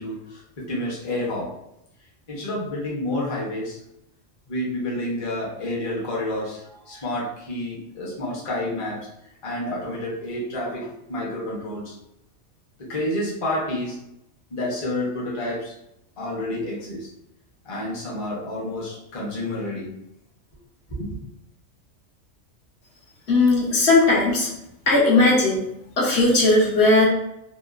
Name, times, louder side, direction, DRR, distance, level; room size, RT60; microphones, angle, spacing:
voice 1, 0.0-1.5 2.3-3.8 4.5-9.0 9.4-11.9 12.8-14.0 14.5-15.7 16.2-17.1 17.7-19.9 20.9-21.2, left 1 dB, 35° left, -5 dB, 0.6 m, -29 dB
voice 2, 23.3-24.5 24.9-25.6 26.0-27.0, left 2 dB, 65° left, -5 dB, 1.0 m, -17 dB
2.9 x 2.1 x 2.4 m, 0.82 s
omnidirectional pair, 1.3 m